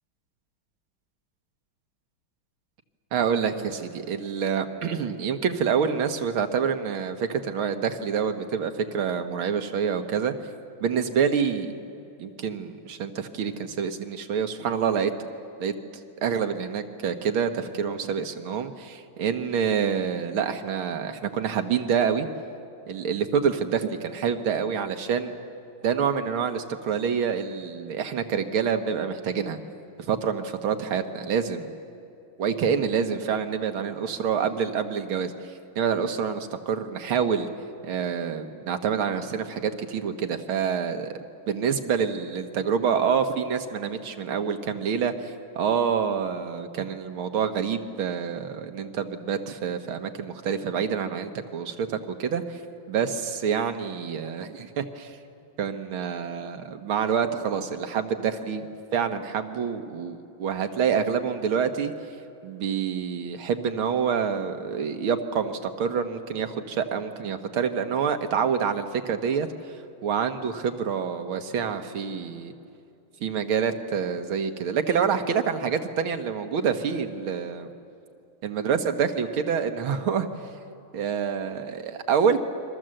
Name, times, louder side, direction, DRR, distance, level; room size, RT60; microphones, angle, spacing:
voice 1, 3.1-10.3 10.8-11.8 12.2-15.1 15.6-15.7 16.2-22.3 22.9-25.3 25.8-29.6 30.0-31.7 32.4-37.5 37.8-41.1 41.5-52.6 52.9-55.2 55.6-58.7 58.9-61.9 62.4-69.5 70.0-72.5 73.2-77.7 78.4-80.3 80.9-82.4, right 7 dB, 75° right, 7 dB, 2.2 m, -27 dB
29.5 x 23.0 x 7.8 m, 2.6 s
omnidirectional pair, 2.3 m